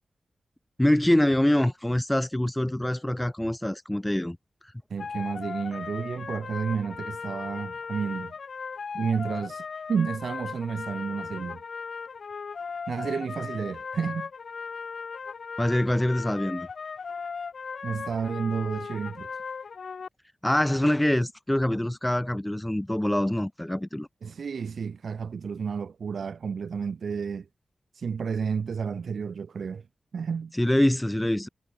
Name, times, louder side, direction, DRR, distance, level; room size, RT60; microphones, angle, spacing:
voice 1, 0.8-4.4 15.6-16.7 20.4-24.1 30.5-31.5, left 1 dB, 10° left, 1.6 m, -24 dB
voice 2, 4.9-8.3 8.9-9.6 9.9-11.6 12.9-14.3 17.8-19.3 24.2-27.5 28.0-29.8 30.1-30.5, right 6 dB, 80° right, 2.2 m, -31 dB
sound 1, 5.0-20.1, left 5 dB, 70° left, 4.2 m, -37 dB
wide cardioid pair, 115°, 0 cm